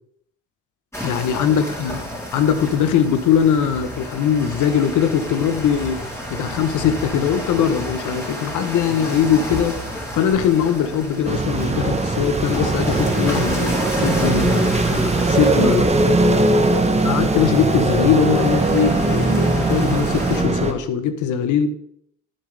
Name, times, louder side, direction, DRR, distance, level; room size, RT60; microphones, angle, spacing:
sound 1, 0.9-20.4, equal, 10° left, 3.5 m, -31 dB
voice 1, 1.0-2.0 2.3-6.0 6.3-9.8 10.1-15.9 17.0-21.7, left 8 dB, 80° left, 10 dB, 1.1 m, -21 dB
sound 2, 11.3-20.7, right 2 dB, 20° right, 1.2 m, -20 dB
10.5 x 7.5 x 3.4 m, 0.69 s
cardioid pair, 90°, 30 cm